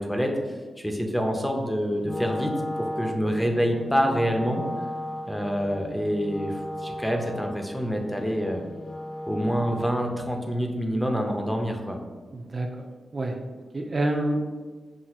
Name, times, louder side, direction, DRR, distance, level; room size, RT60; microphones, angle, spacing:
voice 1, 0.0-4.6 5.3-8.6 9.3-12.0, equal, 5° left, 2 dB, 0.7 m, -27 dB
Wind instrument woodwind instrument, 2.0-10.2, left 1 dB, 70° left, 0.8 m, -35 dB
voice 2, 12.3-12.8 13.1-14.5, right 1 dB, 45° right, 2 dB, 0.4 m, -28 dB
6.0 x 2.8 x 2.4 m, 1.4 s
cardioid pair, 55°, 0 cm